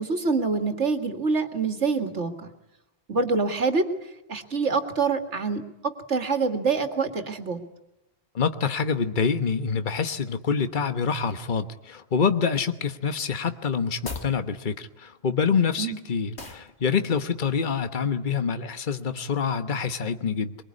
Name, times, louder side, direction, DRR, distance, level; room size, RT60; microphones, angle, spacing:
voice 1, 0.0-2.5 3.1-3.9 4.3-7.6 15.8-16.0, right 4 dB, 90° right, 7 dB, 2.3 m, -26 dB
voice 2, 8.3-20.6, left 6 dB, 45° left, 10 dB, 1.3 m, -26 dB
sound 1, 14.0-14.4 16.4-16.7, left 3 dB, 70° left, 2.5 m, -36 dB
23.0 x 23.0 x 9.7 m, 0.90 s
omnidirectional pair, 1.2 m